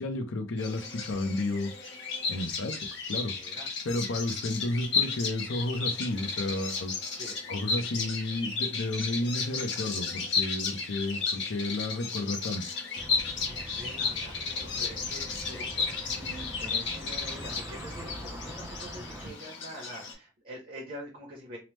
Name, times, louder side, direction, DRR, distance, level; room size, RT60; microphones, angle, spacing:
voice 1, 0.0-1.7 2.3-2.8 3.1-3.3 3.8-6.9 7.5-12.6, left 2 dB, 75° left, 0.5 m, -32 dB
Bird vocalization bird call bird song, 0.6-20.1, left 5 dB, 60° left, 0.9 m, -34 dB
voice 2, 3.3-3.7 7.2-7.4 13.3-15.9 16.1-21.6, right 1 dB, 45° right, 0.8 m, -45 dB
sound 1, 12.9-19.3, equal, 15° right, 0.4 m, -43 dB
2.8 x 2.0 x 3.2 m
head